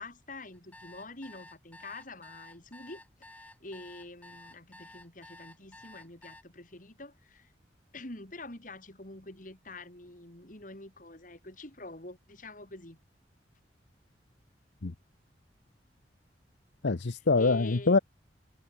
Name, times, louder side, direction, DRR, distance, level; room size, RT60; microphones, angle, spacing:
voice 1, 0.0-7.5 7.9-13.0 17.4-18.0, left 2 dB, 45° left, 4.0 m, -46 dB
sound 1, 0.5-6.4, left 1 dB, 10° left, 3.4 m, -52 dB
voice 2, 16.8-18.0, left 3 dB, 75° left, 0.8 m, -24 dB
head